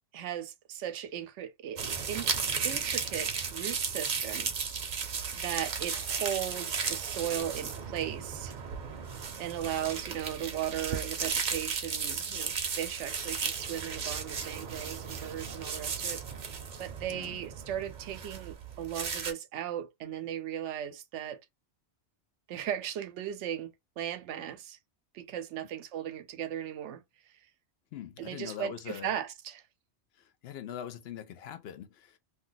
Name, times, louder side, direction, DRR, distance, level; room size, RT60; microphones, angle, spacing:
voice 1, 0.1-1.8 2.1-4.5 5.3-8.6 9.4-16.2 16.8-21.4 22.5-24.8 25.1-27.0 28.2-29.6, right 10 dB, 90° right, 0.9 m, -37 dB
sound 1, 1.8-19.3, right 6 dB, 50° right, 0.7 m, -35 dB
voice 2, 17.1-17.4 27.9-29.1 30.2-32.2, left 10 dB, 65° left, 0.7 m, -42 dB
2.7 x 2.2 x 3.8 m
omnidirectional pair, 1.2 m